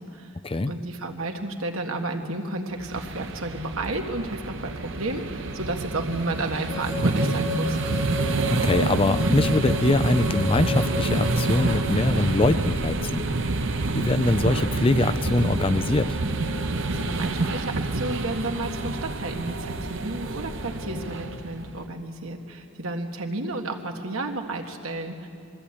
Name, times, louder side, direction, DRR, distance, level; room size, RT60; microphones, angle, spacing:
voice 1, 0.7-7.8 16.9-25.3, right 2 dB, 80° right, 3 dB, 1.8 m, -32 dB
sound 1, 2.8-21.9, right 2 dB, 60° right, 1.0 m, -28 dB
sound 2, 6.7-11.8, left 2 dB, 5° right, 3.1 m, -33 dB
voice 2, 8.5-13.2 13.9-16.2, left 2 dB, 25° left, 12 dB, 0.5 m, -23 dB
sound 3, 12.2-21.4, left 1 dB, 45° left, 0.8 m, -43 dB
22.5 x 14.0 x 8.6 m, 2.5 s
head